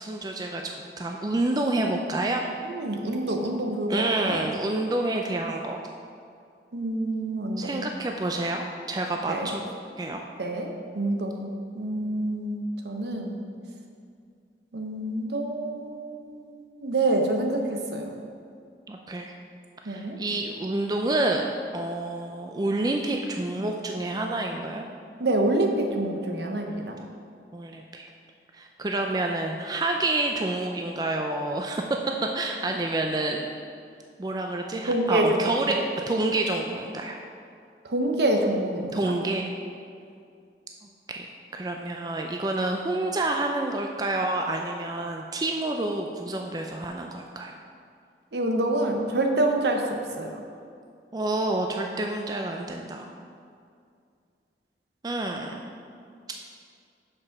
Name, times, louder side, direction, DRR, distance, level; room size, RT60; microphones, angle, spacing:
voice 1, 0.0-2.4 3.9-5.8 7.6-9.6 10.0-10.2 18.9-19.3 19.8-21.4 21.7-24.9 27.5-28.1 28.5-31.8 32.3-33.5 34.2-35.8 36.1-37.2 38.9-39.5 41.1-47.5 51.1-53.1 55.0-55.6, right 2 dB, 20° right, 2 dB, 0.4 m, -28 dB
voice 2, 2.7-4.5 6.7-7.7 9.3-9.5 10.4-13.4 14.7-18.1 19.8-20.2 25.2-27.0 34.9-35.4 35.7-35.9 37.8-39.0 48.3-50.4, right 1 dB, 75° right, 2 dB, 0.8 m, -27 dB
6.0 x 5.2 x 5.8 m, 2.3 s
head